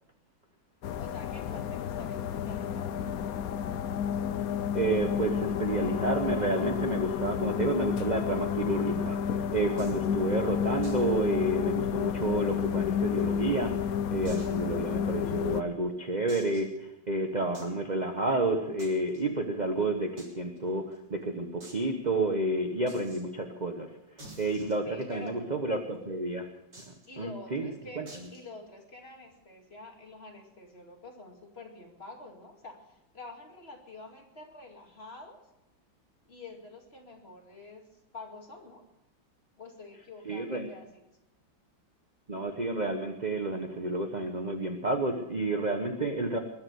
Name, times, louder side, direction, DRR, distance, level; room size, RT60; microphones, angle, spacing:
sound 1, 0.8-15.6, left 8 dB, 60° left, 1.0 m, -31 dB
voice 1, 1.0-3.1 24.8-25.4 27.1-28.0 28.3-35.4 36.3-37.8 38.1-38.8 39.6-41.0, left 3 dB, 30° left, 1 dB, 2.5 m, -47 dB
voice 2, 4.7-13.7 14.1-23.9 24.4-26.5 26.9-28.1 40.2-40.7 42.3-46.4, right 2 dB, 30° right, 5 dB, 0.9 m, -30 dB
sound 2, 9.8-10.1 10.8-11.1 11.4-11.5 11.9-12.0 12.6-13.4 14.2-14.6 15.2-15.3 16.3-16.8 17.5-17.8 18.8-19.2 20.2-20.3 20.6-20.7 20.9-21.0 21.6-21.8 22.9-23.2 24.2-25.3 26.7-27.1 28.1-28.4, right 1 dB, 50° right, 4.3 m, -50 dB
21.5 x 7.6 x 8.0 m, 0.91 s
omnidirectional pair, 2.1 m